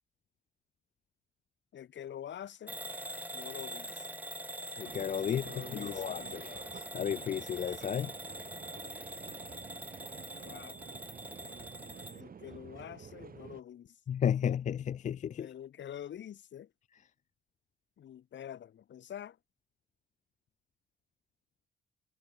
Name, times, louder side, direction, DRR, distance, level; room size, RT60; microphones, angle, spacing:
voice 1, 1.7-2.8 3.3-4.1 5.2-6.8 10.4-10.8 12.1-14.0 15.4-16.7 18.0-19.4, left 10 dB, 65° left, 7.2 m, -46 dB
Bell / Alarm, 2.7-12.2, right 1 dB, 10° right, 4.8 m, -44 dB
voice 2, 4.8-6.4 6.9-8.1 14.1-15.5, left 9 dB, 40° left, 0.4 m, -33 dB
sound 1, 4.8-13.6, right 7 dB, 45° right, 4.8 m, -50 dB
cardioid pair, 90°, 20 cm